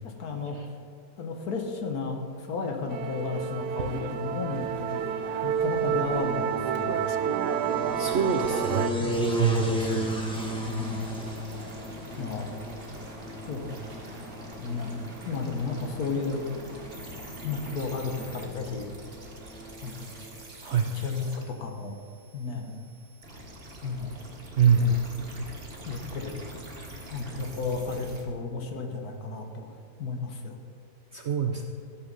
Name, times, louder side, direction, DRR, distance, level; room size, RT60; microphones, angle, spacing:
voice 1, 0.0-0.6 1.2-7.1 9.0-9.5 10.7-11.0 12.2-12.5 13.5-13.8 14.6-16.4 17.4-18.9 19.8-20.1 20.9-22.0 22.3-22.8 23.8-24.2 25.8-26.3 27.1-29.7 30.0-30.6, left 4 dB, 65° left, 3 dB, 1.6 m, -33 dB
sound 1, 2.4-20.4, equal, 5° left, 1.1 m, -37 dB
Musical instrument, 2.9-8.9, right 9 dB, 80° right, 1.2 m, -29 dB
voice 2, 8.0-9.0 9.4-10.2 20.6-20.9 24.6-25.5 31.1-31.7, right 5 dB, 60° right, 3 dB, 0.7 m, -25 dB
sound 2, 9.1-28.2, equal, 35° right, 1.6 m, -44 dB
14.0 x 7.3 x 5.3 m, 2.3 s
omnidirectional pair, 1.8 m